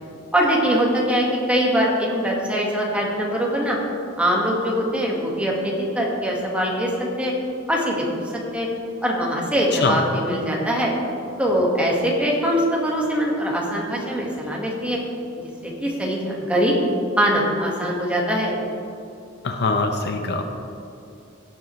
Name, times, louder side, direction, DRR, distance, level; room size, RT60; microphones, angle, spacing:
voice 1, 0.3-3.8 4.2-6.9 7.2-7.3 7.7-8.1 8.5-8.7 9.0-10.9 11.4-15.0 15.4-16.7 17.2-18.5, equal, 5° right, -2 dB, 1.6 m, -22 dB
voice 2, 19.4-20.4, left 3 dB, 55° left, 5 dB, 0.7 m, -23 dB
16.5 x 7.6 x 3.2 m, 2.7 s
head